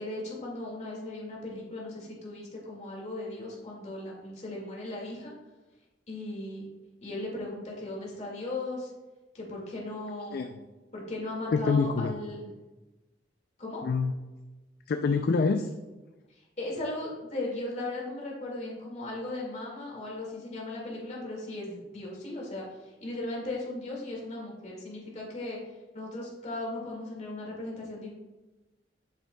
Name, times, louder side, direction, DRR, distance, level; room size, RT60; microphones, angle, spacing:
voice 1, 0.0-5.3 6.1-6.7 7.0-8.9 9.3-10.5 10.9-12.5 13.6-13.8 16.3-25.6 25.9-28.1, left 2 dB, 40° left, -3 dB, 2.0 m, -37 dB
voice 2, 11.5-12.2 13.8-14.2 14.9-15.7, left 4 dB, 55° left, 7 dB, 0.3 m, -26 dB
7.6 x 7.0 x 2.2 m, 1.1 s
head